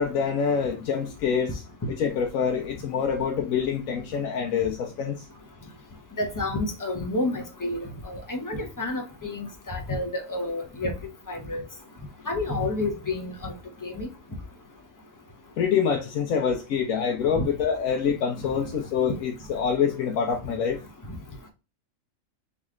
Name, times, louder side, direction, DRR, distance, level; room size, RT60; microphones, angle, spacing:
voice 1, 0.0-1.6 1.9-5.2 15.6-20.8, left 7 dB, 80° left, 1.1 m, -26 dB
voice 2, 6.2-7.8 8.0-10.9 11.3-11.6 12.3-13.5 13.8-14.1 17.4-17.5, left 2 dB, 20° left, 0.7 m, -29 dB
3.9 x 3.1 x 3.6 m
omnidirectional pair, 1.4 m